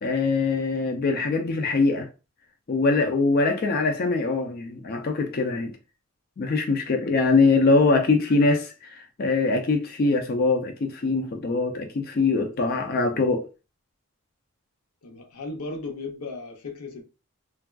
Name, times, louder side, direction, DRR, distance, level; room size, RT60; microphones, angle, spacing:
voice 1, 0.0-2.1 2.7-5.8 6.4-13.5, left 3 dB, 45° left, 0.3 m, -23 dB
voice 2, 15.0-17.0, left 3 dB, 90° left, 0.7 m, -36 dB
3.4 x 2.3 x 2.2 m
head